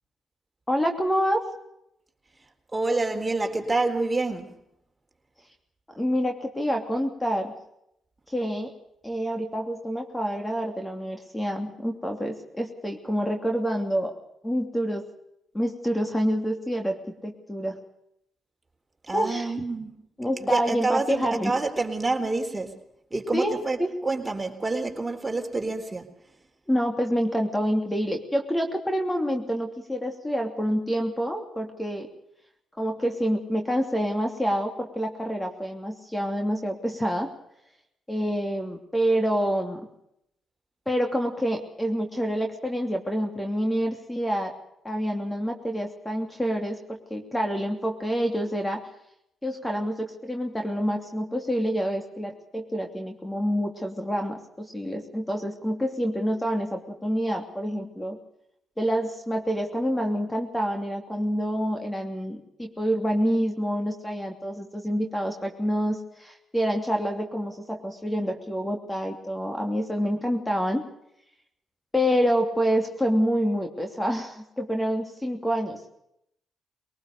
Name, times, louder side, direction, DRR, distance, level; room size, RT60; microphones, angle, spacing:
voice 1, 0.7-1.5 5.9-7.5 8.3-8.7 9.0-14.2 14.4-15.0 15.5-17.8 19.1-19.5 20.2-21.5 23.3-23.9 26.7-32.1 32.8-37.3 38.1-39.8 40.9-44.5 44.8-48.8 49.4-58.2 58.8-70.8 71.9-75.9, equal, 15° left, 4 dB, 2.9 m, -27 dB
voice 2, 2.7-4.6 19.0-19.9 20.4-22.8 23.1-26.1, right 3 dB, 20° right, 4 dB, 3.9 m, -27 dB
21.5 x 19.0 x 6.7 m, 0.78 s
supercardioid pair, 55°, 0 cm